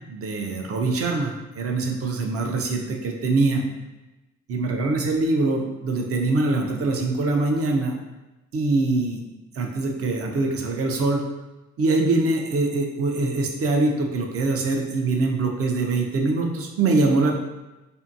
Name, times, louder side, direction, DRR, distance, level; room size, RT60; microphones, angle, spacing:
voice 1, 0.1-3.6 4.5-7.9 8.5-9.2 9.6-11.2 11.8-17.3, right 3 dB, 50° right, 1 dB, 0.5 m, -23 dB
2.7 x 2.5 x 2.5 m, 1.0 s
cardioid pair, 90°, 30 cm